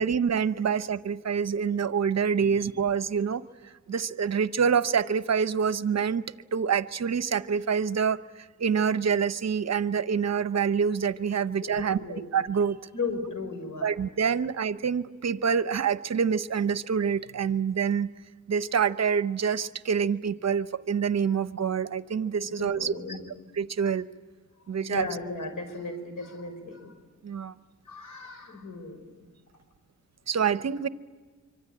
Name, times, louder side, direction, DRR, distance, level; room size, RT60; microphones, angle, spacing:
voice 1, 0.0-3.4 3.9-6.2 6.5-12.0 12.3-12.8 13.8-18.1 18.5-22.9 23.6-24.1 24.7-25.1 27.2-27.5 30.3-30.9, right 6 dB, 55° right, 14 dB, 0.8 m, -26 dB
voice 2, 11.6-12.2 12.9-13.9 22.4-23.2 24.8-26.9 27.8-29.0, left 4 dB, 80° left, 7 dB, 5.0 m, -36 dB
25.5 x 24.5 x 8.7 m, 1.4 s
wide cardioid pair, 95°, 31 cm